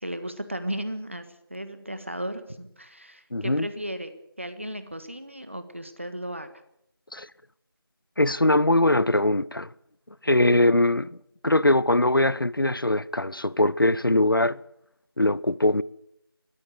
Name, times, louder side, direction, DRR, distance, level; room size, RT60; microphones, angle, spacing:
voice 1, 0.0-1.2 1.5-4.1 4.4-6.5, equal, 30° right, 1.6 m, -35 dB
voice 2, 3.3-3.7 7.1-7.3 8.2-9.7 10.2-11.2 11.4-14.6 15.2-15.8, left 1 dB, 60° left, 0.7 m, -21 dB
20.5 x 15.5 x 8.2 m
figure-of-eight pair, 175°, 13 cm